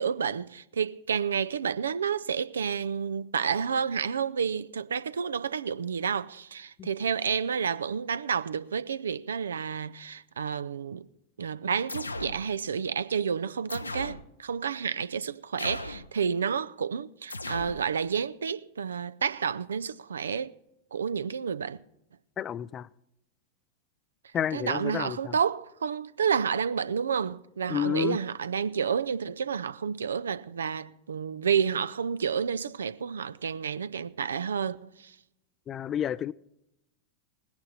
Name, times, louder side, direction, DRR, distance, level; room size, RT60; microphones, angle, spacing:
voice 1, 0.0-11.1 11.4-20.5 20.9-21.8 24.5-35.1, right 7 dB, 70° right, 0.5 m, -30 dB
sound 1, 11.9-12.4 13.7-14.2 15.6-16.1 17.3-17.8, left 2 dB, 80° left, 0.7 m, -36 dB
voice 2, 22.4-22.9 24.3-25.3 27.7-28.2 35.7-36.3, left 9 dB, 25° left, 0.4 m, -30 dB
18.5 x 10.5 x 4.3 m
figure-of-eight pair, 90°, 0 cm